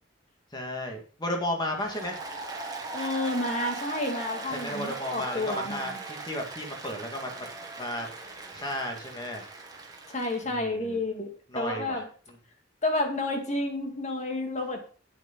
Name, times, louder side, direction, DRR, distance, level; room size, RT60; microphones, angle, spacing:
voice 1, 0.5-2.2 4.5-7.5 7.8-8.1 8.5-9.4 10.4-11.0 11.5-12.0, left 1 dB, 25° left, 2 dB, 2.0 m, -34 dB
Applause, 1.7-10.5, right 3 dB, 20° right, 1.8 m, -39 dB
voice 2, 2.9-6.0 10.1-12.1 12.8-14.8, left 2 dB, 40° left, 3 dB, 2.2 m, -30 dB
8.6 x 7.7 x 5.2 m, 0.40 s
head